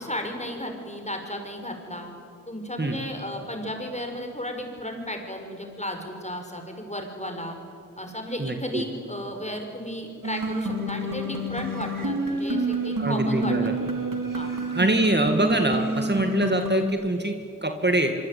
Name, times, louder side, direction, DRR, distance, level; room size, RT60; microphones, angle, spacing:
voice 1, 0.0-2.1 2.5-7.6 8.0-13.9 14.3-14.6, left 1 dB, 20° left, 4 dB, 6.0 m, -34 dB
voice 2, 8.4-8.8 13.0-13.7 14.7-18.1, right 1 dB, 30° right, 5 dB, 2.3 m, -24 dB
sound 1, 10.2-16.8, right 1 dB, 80° right, 3.3 m, -28 dB
25.5 x 24.5 x 9.6 m, 2.5 s
wide cardioid pair, 50°, 32 cm